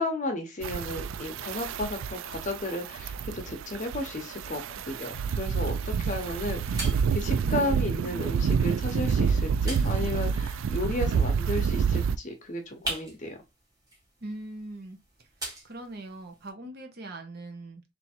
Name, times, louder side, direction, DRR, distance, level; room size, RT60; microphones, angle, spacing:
voice 1, 0.0-13.4, left 1 dB, 35° left, 0.9 m, -33 dB
sound 1, 0.6-12.2, right 6 dB, 70° right, 0.3 m, -28 dB
sound 2, 4.5-16.5, right 1 dB, 20° right, 1.7 m, -44 dB
voice 2, 14.2-15.0 15.6-17.8, right 1 dB, 50° right, 0.9 m, -41 dB
3.5 x 2.8 x 4.4 m
head